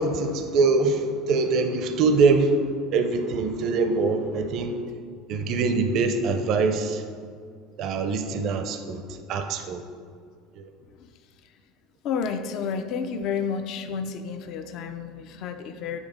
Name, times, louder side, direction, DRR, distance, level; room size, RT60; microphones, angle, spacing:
voice 1, 0.0-4.8 5.3-7.0 7.8-9.0 9.3-9.8 10.6-10.7, right 3 dB, 55° right, 7 dB, 0.5 m, -23 dB
voice 2, 12.0-16.0, left 6 dB, 55° left, 7 dB, 0.4 m, -31 dB
8.9 x 3.5 x 4.9 m, 2.1 s
supercardioid pair, 125°, 0 cm